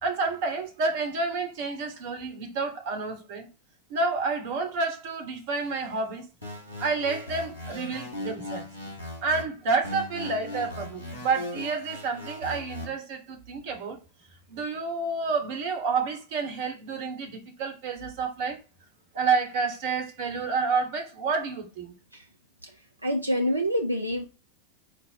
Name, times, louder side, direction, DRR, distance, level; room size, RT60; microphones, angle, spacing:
voice 1, 0.0-3.5 3.9-6.3 6.8-8.7 9.2-14.0 14.5-18.6 19.1-21.9, right 4 dB, 50° right, 1.1 m, -29 dB
sound 1, 6.4-9.4 9.8-12.8, left 1 dB, 90° left, 1.5 m, -38 dB
voice 2, 23.0-24.2, equal, 85° right, 0.4 m, -27 dB
5.1 x 2.1 x 4.1 m
figure-of-eight pair, 90°, 0 cm